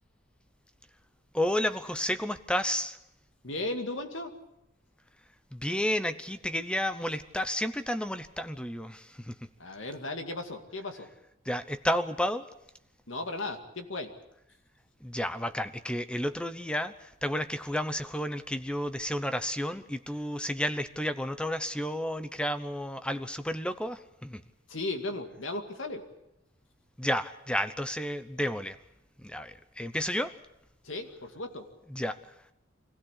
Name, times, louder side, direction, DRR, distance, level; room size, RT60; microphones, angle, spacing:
voice 1, 1.3-3.0 5.5-9.3 11.5-12.5 15.0-24.4 27.0-28.8 29.2-30.3 31.9-32.2, equal, 5° left, 12 dB, 0.8 m, -31 dB
voice 2, 3.4-4.3 9.6-11.1 13.1-14.1 24.7-26.1 30.8-31.7, left 2 dB, 80° left, 6 dB, 2.4 m, -36 dB
25.0 x 16.0 x 8.5 m, 0.85 s
head